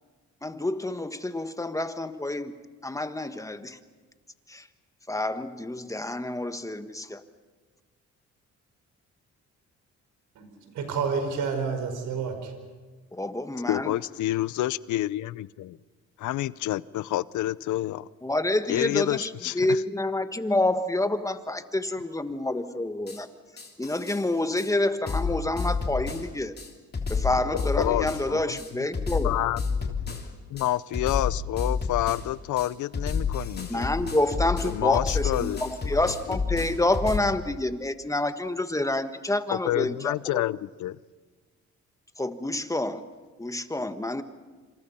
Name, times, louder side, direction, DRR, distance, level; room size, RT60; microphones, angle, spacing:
voice 1, 0.4-2.5 2.8-3.8 4.5-4.7 5.1-7.2 13.1-13.9 18.2-23.3 23.8-26.5 27.1-29.3 33.7-40.4 42.2-43.0 43.4-44.2, left 2 dB, 10° left, 10 dB, 1.5 m, -28 dB
voice 2, 10.3-12.5, right 5 dB, 80° right, 6 dB, 4.9 m, -29 dB
voice 3, 13.7-15.8 16.2-18.1 18.7-19.8 27.7-28.4 28.8-28.9 29.2-30.2 30.5-33.9 34.6-36.4 39.5-41.0, left 14 dB, 80° left, 20 dB, 0.7 m, -29 dB
sound 1, 23.1-23.2 23.6-24.2 24.6-24.7 25.1-26.3 26.6-26.7 26.9-28.3 28.6-30.3 30.6-30.7 30.9-32.3 32.6-37.2, left 5 dB, 35° left, 3.3 m, -30 dB
27.0 x 27.0 x 5.6 m, 1.4 s
cardioid pair, 90°, 30 cm